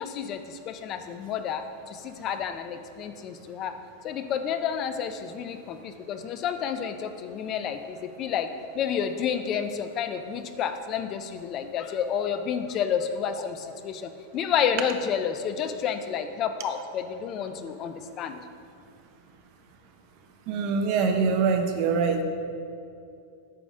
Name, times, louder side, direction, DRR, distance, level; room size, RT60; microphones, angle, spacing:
voice 1, 0.0-3.7 4.0-8.5 8.7-18.4, left 8 dB, 25° left, 9 dB, 0.4 m, -30 dB
voice 2, 20.5-22.2, right 5 dB, 35° right, 5 dB, 0.6 m, -24 dB
9.2 x 3.6 x 6.2 m, 2.5 s
supercardioid pair, 175°, 0 cm